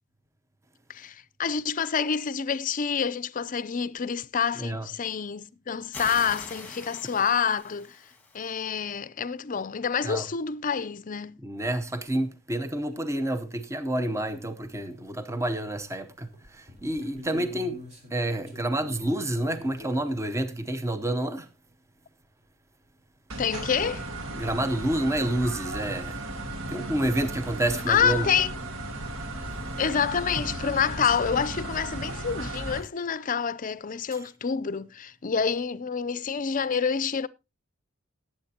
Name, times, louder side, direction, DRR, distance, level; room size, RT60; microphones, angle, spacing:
voice 1, 0.9-8.0 8.3-11.4 23.4-24.1 27.9-28.5 29.8-37.3, left 6 dB, 40° left, 0.5 m, -27 dB
sound 1, 5.9-8.5, left 3 dB, 10° left, 1.8 m, -42 dB
voice 2, 11.4-17.8 18.1-21.5 24.3-26.2 26.7-28.3, right 1 dB, 15° right, 0.8 m, -29 dB
sound 2, 14.2-14.3 14.7-15.8 16.2-20.5 23.1-23.2 23.4-23.5 24.5-24.6 25.2-25.3 28.9-29.0 29.2-29.6, left 1 dB, 35° right, 3.7 m, -46 dB
sound 3, 23.3-32.8, right 1 dB, 80° right, 1.7 m, -35 dB
18.5 x 8.6 x 2.8 m
head